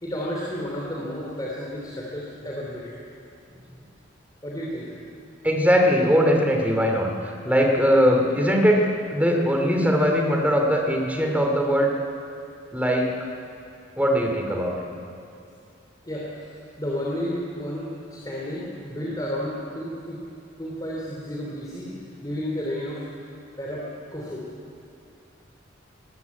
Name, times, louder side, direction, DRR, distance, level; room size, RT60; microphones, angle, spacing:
voice 1, 0.0-2.9 4.4-4.9 16.0-20.2 20.6-21.9 22.2-23.0 23.6-24.4, equal, 20° left, -4 dB, 3.0 m, -32 dB
voice 2, 5.4-11.9 12.7-13.1 14.0-14.9, equal, 10° right, 2 dB, 2.7 m, -21 dB
21.5 x 14.5 x 9.6 m, 2.5 s
head